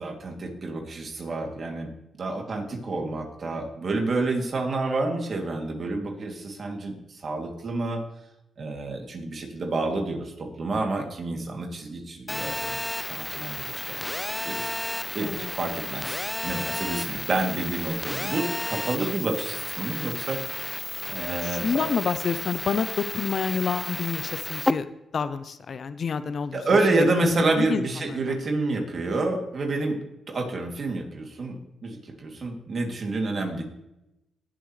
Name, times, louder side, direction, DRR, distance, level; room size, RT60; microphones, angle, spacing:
voice 1, 0.0-1.9 2.2-8.0 8.6-14.2 14.4-14.7 15.1-20.4 21.1-21.9 26.5-30.0 30.3-33.6, right 2 dB, 50° right, 2 dB, 2.7 m, -29 dB
Telephone, 12.3-24.7, left 1 dB, 15° left, 0.6 m, -32 dB
voice 2, 15.2-15.5 21.4-24.9 25.1-26.6 27.0-27.8 28.1-28.4, left 6 dB, 55° left, 12 dB, 0.7 m, -28 dB
19.5 x 7.6 x 3.2 m, 0.91 s
cardioid pair, 70°, 0 cm